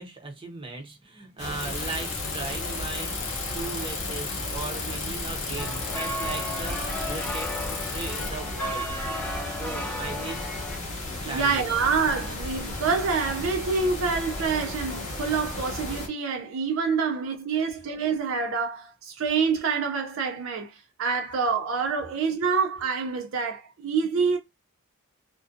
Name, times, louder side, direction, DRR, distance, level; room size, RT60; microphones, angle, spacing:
voice 1, 0.0-8.9 9.5-10.6 11.2-11.8 12.7-12.8 17.5-17.6, right 3 dB, 25° right, 0.7 m, -38 dB
sound 1, 1.4-16.1, left 2 dB, 35° left, 0.9 m, -34 dB
Bicycle, 1.6-8.3, left 5 dB, 70° left, 0.8 m, -36 dB
sound 2, 5.6-10.8, equal, 5° left, 0.3 m, -34 dB
voice 2, 11.2-24.4, right 5 dB, 65° right, 0.4 m, -27 dB
2.5 x 2.2 x 2.4 m
head